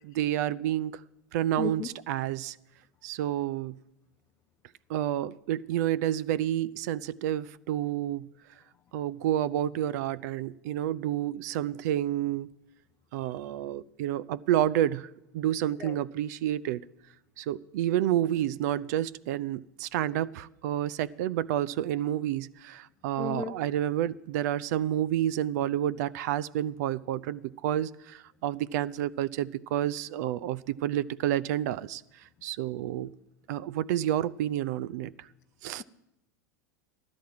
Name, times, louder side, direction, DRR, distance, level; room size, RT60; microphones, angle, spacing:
voice 1, 0.0-1.0 1.3-2.6 3.0-3.8 4.9-8.3 8.9-12.5 13.1-16.8 17.4-32.0 32.4-33.1 33.5-35.3 35.6-35.8, right 12 dB, 60° right, 18 dB, 0.5 m, -29 dB
voice 2, 1.6-1.9 15.8-16.0 23.2-23.5, left 7 dB, 25° left, 3 dB, 0.7 m, -34 dB
15.0 x 12.5 x 4.7 m, 0.85 s
hypercardioid pair, 90°, 10 cm